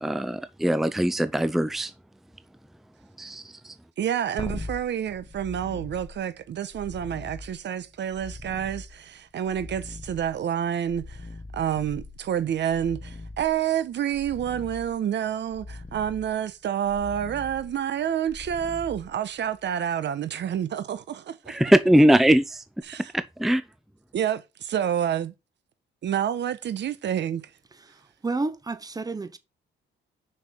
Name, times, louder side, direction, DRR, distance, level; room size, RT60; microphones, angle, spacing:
voice 1, 0.0-1.9 3.2-3.7 21.5-22.6 23.1-23.6, equal, ahead, 0.6 m, -21 dB
voice 2, 4.0-11.3 11.5-21.6 22.8-23.1 24.1-25.3 26.0-27.5, right 9 dB, 65° right, 1.1 m, -28 dB
sound 1, 4.4-19.7 22.8-22.9, left 2 dB, 20° left, 0.9 m, -42 dB
voice 3, 27.9-29.4, right 3 dB, 20° right, 1.1 m, -31 dB
6.0 x 5.3 x 5.7 m
cardioid pair, 90°, 20 cm